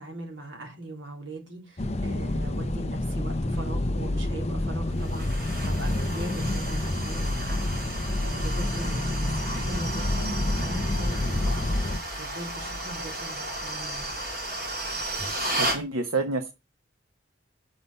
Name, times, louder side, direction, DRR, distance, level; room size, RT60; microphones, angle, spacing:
voice 1, 0.0-14.1, right 2 dB, 65° right, 2 dB, 3.2 m, -40 dB
sound 1, 1.8-12.0, left 1 dB, 30° left, 0.6 m, -28 dB
sound 2, 5.0-15.8, right 1 dB, 45° right, 3.5 m, -34 dB
voice 2, 15.6-16.5, right 3 dB, 85° right, 7 dB, 0.9 m, -28 dB
5.7 x 5.5 x 6.7 m, 0.26 s
head